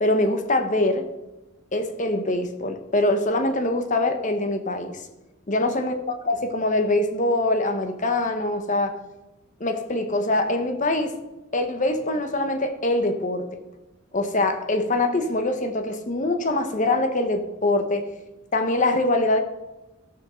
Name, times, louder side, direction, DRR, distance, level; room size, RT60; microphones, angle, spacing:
voice 1, 0.0-1.0 1.7-5.0 5.5-9.0 9.6-11.1 11.5-13.4 14.1-18.1 18.5-19.4, left 2 dB, 35° left, 7 dB, 1.0 m, -23 dB
13.5 x 5.5 x 6.3 m, 1.1 s
head